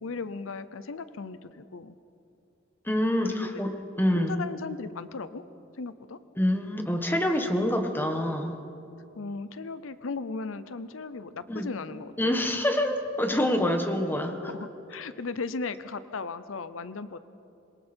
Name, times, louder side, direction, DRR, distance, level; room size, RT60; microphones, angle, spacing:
voice 1, 0.0-1.9 3.2-3.5 4.1-5.4 5.8-6.2 9.2-12.4 14.4-17.2, left 4 dB, 85° left, 13 dB, 0.7 m, -36 dB
voice 2, 2.8-3.7 4.0-4.3 6.4-8.5 11.5-11.7 12.2-14.5, left 1 dB, 10° left, 4 dB, 1.6 m, -26 dB
26.5 x 22.0 x 4.5 m, 2.8 s
head